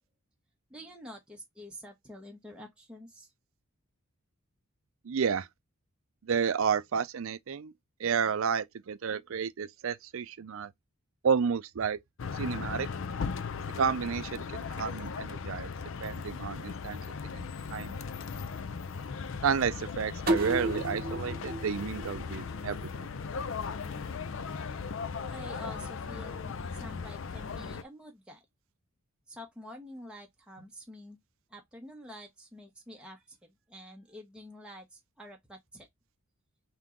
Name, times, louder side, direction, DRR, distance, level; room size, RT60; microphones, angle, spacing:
voice 1, 0.7-3.3 25.3-28.4 29.3-31.2 31.5-35.9, equal, 5° right, 0.9 m, -48 dB
voice 2, 5.0-5.5 6.2-7.7 8.0-10.7 11.2-12.0 12.3-12.9 13.8-15.7 16.0-17.0 17.3-18.0 19.4-23.1, right 6 dB, 65° right, 0.4 m, -31 dB
sound 1, 12.2-27.8, left 5 dB, 60° left, 0.5 m, -37 dB
sound 2, 20.3-23.1, right 1 dB, 40° right, 0.8 m, -33 dB
3.7 x 2.9 x 3.6 m
head